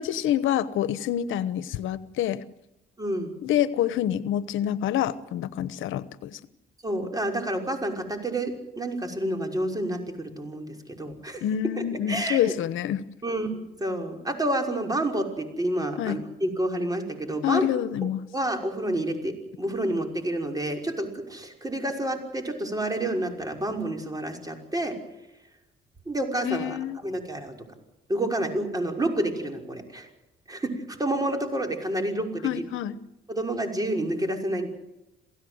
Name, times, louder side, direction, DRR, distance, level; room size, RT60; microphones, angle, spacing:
voice 1, 0.0-2.4 3.4-6.4 11.4-13.1 16.0-16.2 17.4-18.2 26.4-27.0 32.4-33.0, left 11 dB, 85° left, 15 dB, 1.1 m, -27 dB
voice 2, 3.0-3.3 6.8-11.4 11.7-12.5 13.2-17.7 18.0-24.9 26.1-26.8 27.0-27.5 28.1-30.1 30.5-32.5 33.3-34.7, right 1 dB, 20° right, 3 dB, 5.7 m, -29 dB
28.0 x 17.0 x 8.0 m, 0.94 s
cardioid pair, 90°, 20 cm